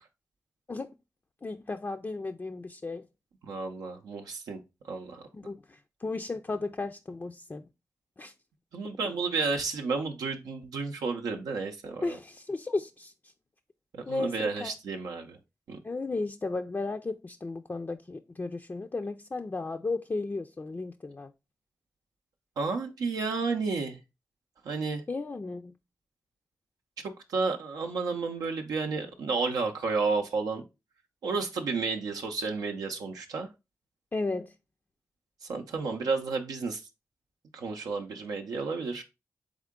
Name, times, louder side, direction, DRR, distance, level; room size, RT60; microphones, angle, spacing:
voice 1, 1.4-3.0 5.3-7.7 8.2-8.3 12.0-13.1 14.1-14.7 15.8-21.3 25.1-25.7 34.1-34.5, left 3 dB, 30° left, 0.4 m, -34 dB
voice 2, 3.4-4.6 4.8-5.3 8.7-12.2 13.9-15.4 15.7-15.8 22.6-24.0 24.6-25.0 27.3-30.6 31.2-33.5 35.4-36.8 37.5-39.0, right 4 dB, 90° right, 0.5 m, -31 dB
3.7 x 3.6 x 3.6 m
cardioid pair, 45°, 6 cm